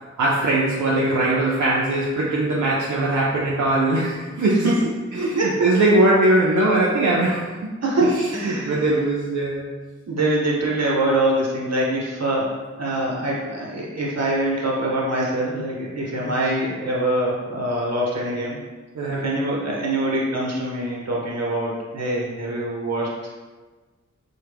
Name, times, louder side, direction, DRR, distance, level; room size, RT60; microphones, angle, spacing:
voice 1, 0.2-4.7 5.2-7.7 8.0-9.7 16.2-16.3 18.9-19.2, right 2 dB, 80° right, -5 dB, 0.5 m, -21 dB
voice 2, 5.2-5.7 7.8-8.9 10.1-18.6 19.1-23.1, right 1 dB, 60° right, -4 dB, 1.0 m, -24 dB
4.4 x 2.2 x 3.3 m, 1.3 s
wide cardioid pair, 75°, 30 cm